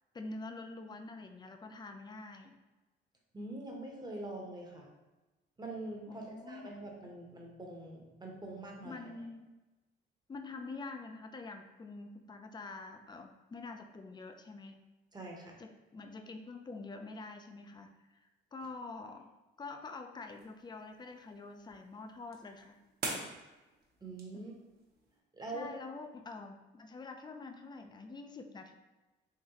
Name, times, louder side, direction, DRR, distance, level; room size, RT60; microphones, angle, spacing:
voice 1, 0.1-2.6 6.1-6.8 8.8-9.5 10.3-14.8 15.6-18.2 18.5-22.8 24.3-24.4 25.5-28.7, left 3 dB, 20° left, 6 dB, 0.4 m, -46 dB
voice 2, 3.3-4.9 5.6-9.0 15.1-15.6 24.0-24.5 25.3-25.7, right 2 dB, 20° right, 0 dB, 0.8 m, -44 dB
sound 1, 20.1-25.2, right 2 dB, 50° right, 1.0 m, -46 dB
3.9 x 3.0 x 2.9 m, 1.1 s
cardioid pair, 90°, 20 cm